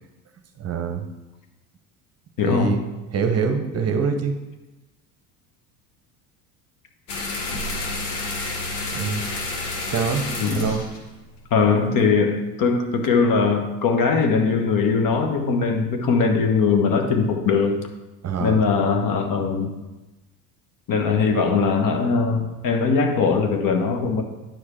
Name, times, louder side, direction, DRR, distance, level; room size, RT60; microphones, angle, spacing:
voice 1, 0.6-1.0 2.4-4.4 8.9-9.2 9.9-10.8 18.2-18.6, right 6 dB, 35° right, 5 dB, 0.9 m, -25 dB
voice 2, 2.4-2.8 10.4-10.7 11.5-17.8 18.4-19.7 20.9-24.2, left 5 dB, 45° left, 3 dB, 1.3 m, -20 dB
sound 1, 7.1-12.0, left 2 dB, 70° left, 1.6 m, -30 dB
9.5 x 4.8 x 4.3 m, 1.1 s
hypercardioid pair, 75°, 46 cm